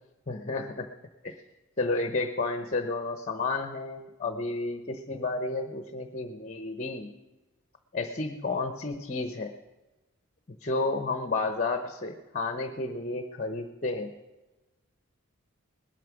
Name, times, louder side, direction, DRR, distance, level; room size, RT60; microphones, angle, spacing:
voice 1, 0.3-0.9 1.2-1.3 1.8-7.1 7.9-9.5 10.6-14.1, left 3 dB, 35° left, 6 dB, 0.9 m, -31 dB
19.5 x 8.8 x 6.1 m, 1.1 s
head